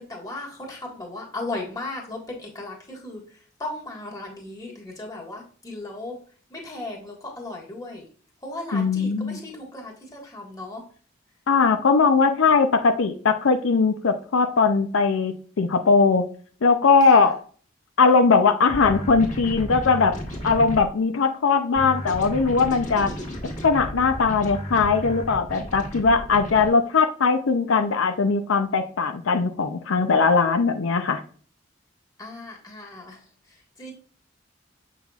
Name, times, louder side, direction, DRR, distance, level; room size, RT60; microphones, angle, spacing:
voice 1, 0.0-6.2 6.5-8.0 8.4-10.9 17.0-17.3 23.0-23.5 32.2-33.9, left 2 dB, 20° left, -2 dB, 1.6 m, -36 dB
voice 2, 8.7-9.4 11.5-16.2 16.6-17.3 18.0-20.2 20.4-23.1 23.6-31.2, left 4 dB, 85° left, 7 dB, 0.5 m, -20 dB
sound 1, 18.7-20.9 21.7-26.7, equal, 40° left, 1.8 m, -33 dB
7.1 x 5.8 x 2.4 m, 0.43 s
head